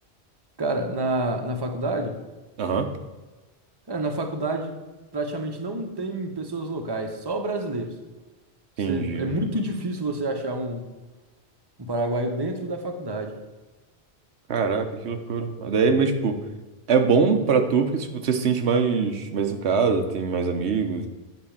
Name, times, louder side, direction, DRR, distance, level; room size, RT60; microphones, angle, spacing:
voice 1, 0.6-2.2 3.9-4.7 5.1-8.0 8.9-10.9 11.8-13.4, right 2 dB, 25° right, 4 dB, 0.9 m, -28 dB
voice 2, 2.6-2.9 8.8-9.3 14.5-16.4 16.9-21.1, right 5 dB, 85° right, 6 dB, 1.1 m, -23 dB
8.8 x 4.2 x 7.2 m, 1.2 s
omnidirectional pair, 1.1 m